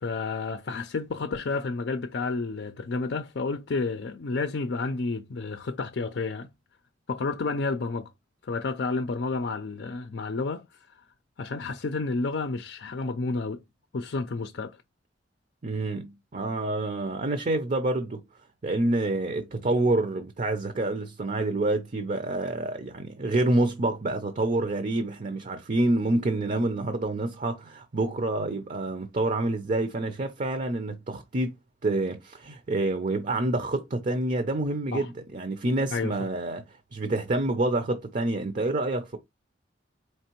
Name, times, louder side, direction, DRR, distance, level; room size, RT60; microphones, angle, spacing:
voice 1, 0.0-6.5 7.1-8.1 8.4-10.6 11.4-13.6 13.9-14.8 34.9-35.1 35.9-36.2, left 3 dB, 65° left, 0.5 m, -30 dB
voice 2, 15.6-18.2 18.6-31.5 31.8-36.6 36.9-39.2, right 2 dB, 45° right, 0.6 m, -27 dB
4.6 x 3.2 x 3.0 m
head